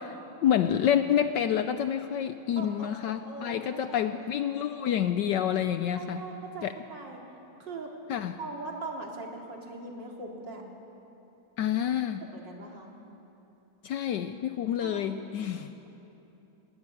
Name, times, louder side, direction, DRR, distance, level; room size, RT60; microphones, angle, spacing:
voice 1, 0.0-6.2 6.6-6.7 8.1-8.4 11.6-12.2 13.8-15.7, left 9 dB, 70° left, 10 dB, 1.1 m, -28 dB
voice 2, 2.6-4.7 6.0-7.2 7.6-7.9 8.4-10.6 12.3-12.9 14.8-15.1, right 3 dB, 60° right, 0 dB, 3.2 m, -41 dB
19.5 x 17.5 x 8.8 m, 2.9 s
omnidirectional pair, 2.3 m